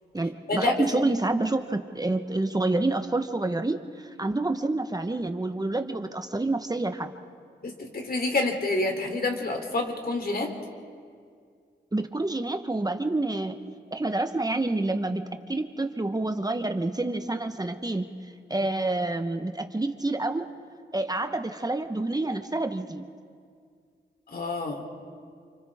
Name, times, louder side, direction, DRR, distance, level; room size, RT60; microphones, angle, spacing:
voice 1, 0.1-7.1 11.9-13.5 13.9-20.5 20.9-23.1, right 2 dB, 20° right, 6 dB, 1.2 m, -28 dB
voice 2, 7.6-10.5 24.3-24.8, left 2 dB, 55° left, 3 dB, 3.4 m, -28 dB
29.0 x 25.5 x 3.7 m, 2.2 s
cardioid pair, 55°, 19 cm